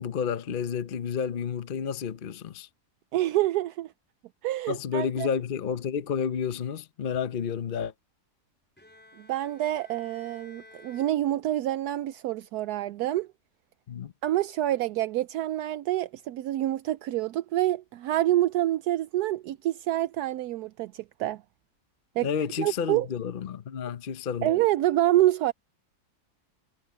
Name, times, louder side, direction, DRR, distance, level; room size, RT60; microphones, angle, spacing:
voice 1, 0.0-2.7 4.7-7.9 13.9-14.1 22.2-24.5, left 7 dB, 45° left, 0.8 m, -30 dB
voice 2, 3.1-3.9 4.4-5.3 9.2-13.3 14.2-21.4 22.2-22.3 22.6-23.1 24.4-25.5, right 14 dB, 80° right, 1.1 m, -27 dB
Bowed string instrument, 8.8-11.9, left 1 dB, 5° left, 5.4 m, -54 dB
omnidirectional pair, 1.7 m